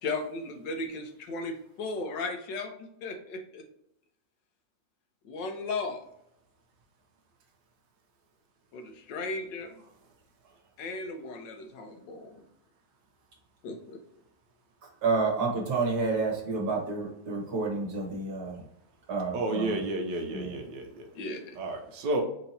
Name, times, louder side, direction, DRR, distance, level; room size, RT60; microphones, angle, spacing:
voice 1, 0.0-3.6 5.2-6.0 8.7-9.8 10.8-12.3 13.6-14.0 21.1-21.6, left 3 dB, 85° left, 5 dB, 1.5 m, -36 dB
voice 2, 15.0-18.6 19.1-19.8 20.3-20.6, right 4 dB, 60° right, -1 dB, 1.7 m, -29 dB
voice 3, 19.3-21.1 21.6-22.2, right 2 dB, 85° right, 3 dB, 1.5 m, -31 dB
4.5 x 2.9 x 4.0 m, 0.76 s
omnidirectional pair, 1.9 m